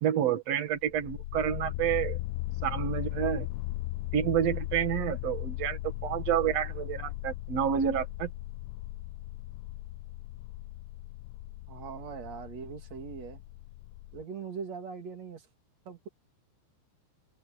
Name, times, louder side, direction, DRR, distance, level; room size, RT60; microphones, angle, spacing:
voice 1, 0.0-2.2 2.6-3.5 4.1-8.3, right 10 dB, 75° right, 1.5 m, -29 dB
sound 1, 0.8-14.2, left 18 dB, 80° left, 2.7 m, -38 dB
voice 2, 11.7-13.4 14.1-15.5 15.8-16.1, right 6 dB, 40° right, 3.0 m, -41 dB
omnidirectional pair, 5.6 m